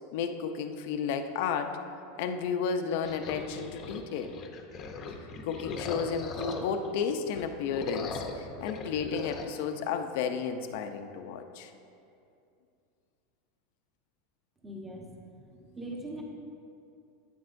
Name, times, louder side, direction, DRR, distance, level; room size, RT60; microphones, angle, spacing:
voice 1, 0.1-1.8 2.2-4.3 5.4-11.7, left 6 dB, 60° left, 7 dB, 0.6 m, -32 dB
sound 1, 3.1-6.9 7.3-9.5, left 3 dB, 30° left, 0.8 m, -39 dB
voice 2, 14.6-16.2, right 1 dB, 10° right, -1 dB, 1.1 m, -42 dB
12.0 x 9.2 x 2.6 m, 2.6 s
supercardioid pair, 160°, 0 cm